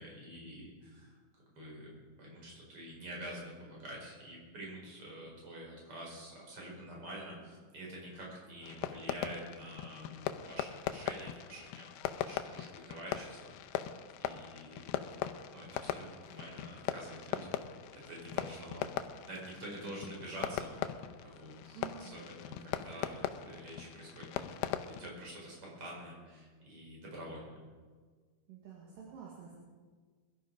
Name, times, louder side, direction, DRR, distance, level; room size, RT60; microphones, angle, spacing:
voice 1, 0.0-1.9 2.2-11.9 12.2-15.0 15.5-24.6 24.9-27.6, right 1 dB, 35° right, -2 dB, 5.7 m, -47 dB
Fireworks, 8.6-25.1, left 11 dB, 85° left, 2.6 m, -40 dB
voice 2, 21.7-22.3 28.5-29.5, right 6 dB, 65° right, -4 dB, 3.6 m, -49 dB
22.0 x 12.5 x 5.1 m, 1.5 s
omnidirectional pair, 4.5 m